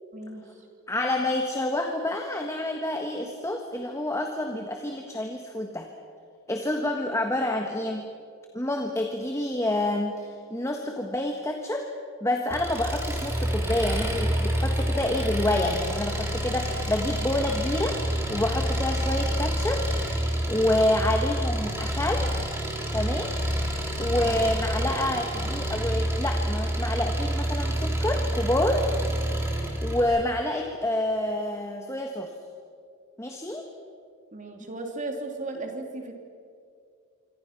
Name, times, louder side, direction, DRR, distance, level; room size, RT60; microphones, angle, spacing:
voice 1, 0.1-0.4 24.2-24.4 34.3-36.1, right 2 dB, 35° right, 3 dB, 3.0 m, -35 dB
voice 2, 0.9-5.8 6.5-8.0 8.5-11.8 12.2-18.0 18.3-19.8 20.2-22.3 22.9-23.3 24.0-28.9 29.8-32.3 33.2-33.6, left 1 dB, 15° left, 3 dB, 1.5 m, -28 dB
Engine, 12.5-30.0, equal, 10° right, 3.4 m, -28 dB
26.0 x 25.5 x 5.9 m, 2.3 s
head